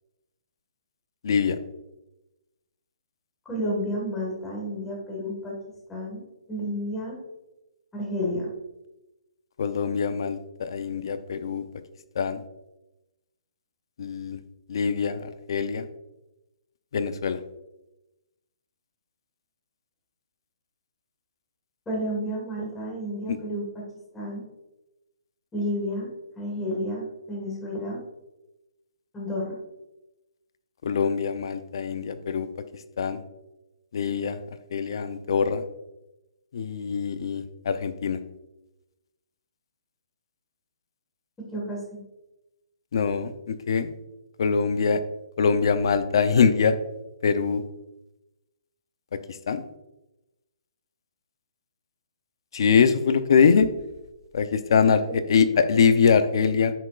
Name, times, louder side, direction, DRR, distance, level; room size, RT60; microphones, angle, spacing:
voice 1, 1.2-1.6 9.6-11.6 12.2-12.4 14.0-14.4 14.7-15.8 16.9-17.4 23.3-23.4 30.8-32.5 33.0-33.2 33.9-34.4 34.7-35.6 36.5-38.2 42.9-43.9 44.4-45.0 45.4-46.7 47.2-47.6 49.5-49.6 52.5-53.7 54.3-55.0 55.3-56.7, left 6 dB, 50° left, 10 dB, 0.7 m, -23 dB
voice 2, 3.5-5.6 5.9-6.2 6.5-7.2 7.9-8.5 21.9-23.8 24.1-24.4 25.5-26.1 26.4-28.0 29.1-29.6 41.4-42.0 55.0-55.1, equal, 5° left, -4 dB, 1.8 m, -31 dB
10.0 x 7.6 x 2.5 m, 0.95 s
hypercardioid pair, 170°, 3 cm